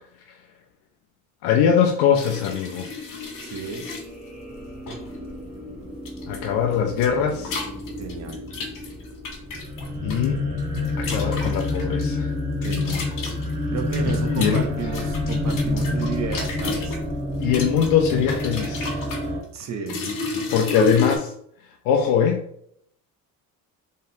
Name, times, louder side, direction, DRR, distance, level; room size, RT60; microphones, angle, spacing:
voice 1, 1.4-2.9 6.3-7.6 10.0-10.4 11.0-12.3 14.1-14.7 17.4-18.9 20.5-21.3 21.9-22.5, left 8 dB, 85° left, 2 dB, 0.5 m, -22 dB
sound 1, 2.1-4.0 4.9-5.1 6.0-6.4 6.7-10.2 10.6-12.0 12.6-17.0 17.4-19.3 19.9-21.2, left 3 dB, 60° left, 1.5 m, -32 dB
sound 2, 3.2-19.4, left 2 dB, 20° right, 1.2 m, -29 dB
voice 2, 3.4-3.8 8.0-8.4 12.6-13.1 13.7-17.0 19.5-20.0, right 6 dB, 50° right, 4 dB, 0.8 m, -32 dB
3.9 x 3.6 x 2.7 m, 0.70 s
cardioid pair, 95°, 36 cm